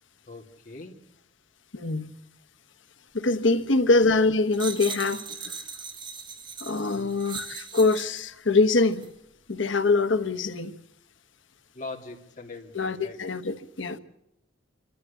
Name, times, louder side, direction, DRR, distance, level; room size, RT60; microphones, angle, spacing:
voice 1, 0.3-1.0 6.8-7.1 11.7-13.2, left 3 dB, 40° left, 3.0 m, -41 dB
voice 2, 1.7-2.1 3.1-5.6 6.6-9.1 9.5-10.7 12.7-14.0, left 3 dB, 85° left, 1.3 m, -24 dB
sound 1, 4.5-8.3 8.9-9.1, right 5 dB, 25° right, 1.4 m, -39 dB
28.5 x 13.0 x 8.4 m
head